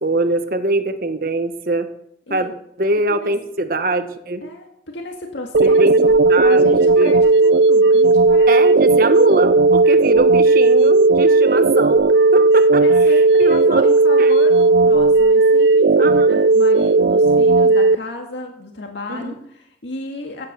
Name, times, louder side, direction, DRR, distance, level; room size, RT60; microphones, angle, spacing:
voice 1, 0.0-1.9 2.3-2.5 2.8-4.4 5.6-6.7 7.0-7.1 8.5-12.8 13.4-13.8 14.2-14.3 16.0-16.3 19.1-19.3, right 2 dB, 50° right, 8 dB, 1.4 m, -22 dB
voice 2, 4.4-8.6 12.8-20.5, left 1 dB, 85° left, 2 dB, 2.0 m, -32 dB
sound 1, 5.5-18.0, right 3 dB, 70° right, 0.5 m, -14 dB
15.5 x 9.1 x 6.8 m, 0.73 s
head